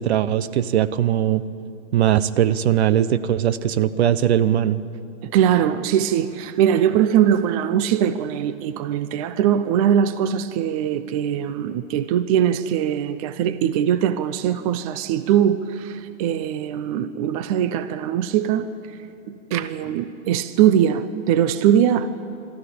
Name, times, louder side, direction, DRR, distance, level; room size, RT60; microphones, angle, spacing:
voice 1, 0.0-1.4 1.9-4.8, right 10 dB, 60° right, 15 dB, 0.9 m, -20 dB
voice 2, 5.2-18.7 19.3-22.1, right 9 dB, 30° right, 13 dB, 0.6 m, -21 dB
24.0 x 13.0 x 8.6 m, 2.8 s
hypercardioid pair, 145°, 37 cm